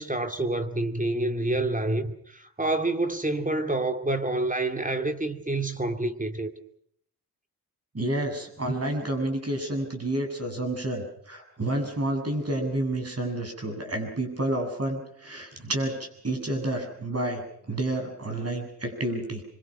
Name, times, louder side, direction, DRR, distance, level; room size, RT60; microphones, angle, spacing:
voice 1, 0.0-6.5, right 2 dB, 20° right, 2.4 m, -28 dB
voice 2, 7.9-19.4, right 1 dB, 40° right, 7.6 m, -30 dB
25.0 x 24.5 x 6.1 m
wide cardioid pair, 75°, 39 cm